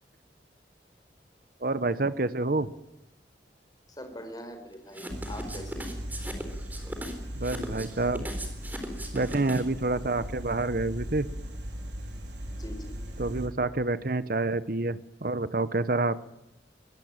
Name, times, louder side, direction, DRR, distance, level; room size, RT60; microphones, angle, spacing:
voice 1, 1.6-2.7 7.4-8.3 9.1-11.3 13.2-16.2, right 2 dB, 50° right, 14 dB, 1.0 m, -28 dB
voice 2, 4.0-6.0 12.5-13.0, equal, 20° left, 6 dB, 4.6 m, -43 dB
sound 1, 4.9-9.8, right 1 dB, 10° right, 4.0 m, -38 dB
sound 2, 5.1-13.5, equal, 70° right, 4.4 m, -38 dB
23.0 x 21.0 x 8.9 m, 0.85 s
head